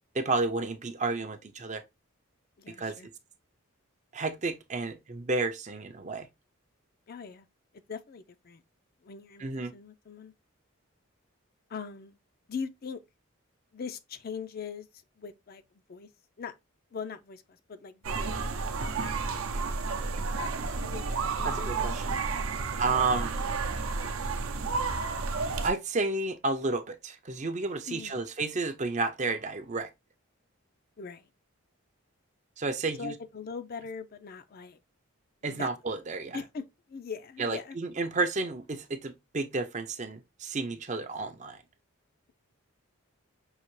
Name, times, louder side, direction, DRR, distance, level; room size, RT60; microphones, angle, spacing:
voice 1, 0.2-1.8 2.7-3.0 4.1-6.3 9.4-9.7 21.4-22.1 22.8-23.3 25.6-29.9 32.6-33.1 35.4-36.4 37.4-41.6, right 3 dB, 35° right, 0.5 m, -31 dB
voice 2, 2.6-3.1 7.1-7.5 7.9-8.6 9.0-10.3 11.7-12.2 12.5-13.0 13.7-16.1 16.4-16.5 16.9-18.6 20.7-22.2 22.5-22.8 27.9-28.2 31.0-31.3 33.0-34.8 35.5-35.7 36.3-37.8, left 5 dB, 45° left, 0.4 m, -41 dB
sound 1, 18.0-25.7, right 4 dB, 75° right, 0.6 m, -31 dB
5.5 x 2.8 x 3.1 m
head